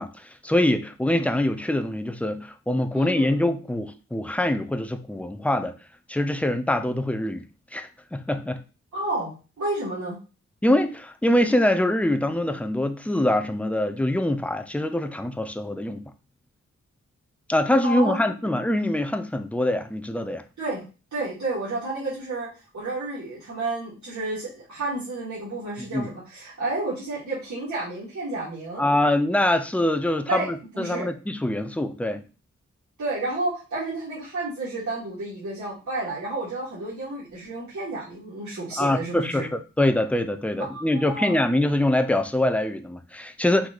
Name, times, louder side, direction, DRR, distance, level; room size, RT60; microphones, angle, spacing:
voice 1, 0.0-5.7 6.1-7.4 7.7-8.6 10.6-16.0 17.5-20.4 25.8-26.1 28.8-32.2 38.8-43.7, left 1 dB, 5° left, 0.5 m, -24 dB
voice 2, 2.9-3.4 8.9-10.2 17.8-18.2 20.6-20.9 21.1-22.5 22.7-28.9 30.3-30.5 30.7-31.1 33.0-39.5 40.7-41.4, right 2 dB, 70° right, 2.0 m, -31 dB
4.6 x 2.7 x 3.9 m
wide cardioid pair, 95°, 29 cm